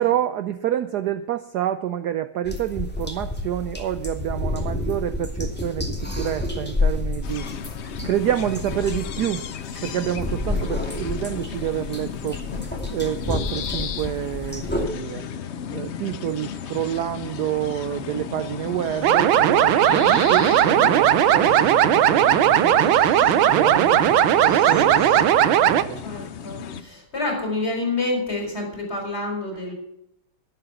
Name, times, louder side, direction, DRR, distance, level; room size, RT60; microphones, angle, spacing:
voice 1, 0.0-7.5 8.0-9.4 9.8-12.4 12.9-15.2 15.7-23.0 23.5-26.0, right 11 dB, 70° right, 11 dB, 1.0 m, -28 dB
sound 1, 2.4-14.9, left 2 dB, 5° left, 2.3 m, -29 dB
sound 2, 7.2-26.8, left 7 dB, 85° left, 0.6 m, -34 dB
sound 3, 19.0-25.8, right 11 dB, 85° right, 1.6 m, -17 dB
voice 2, 26.0-29.7, left 2 dB, 30° left, 1 dB, 4.7 m, -28 dB
12.0 x 11.5 x 5.8 m, 0.79 s
omnidirectional pair, 2.1 m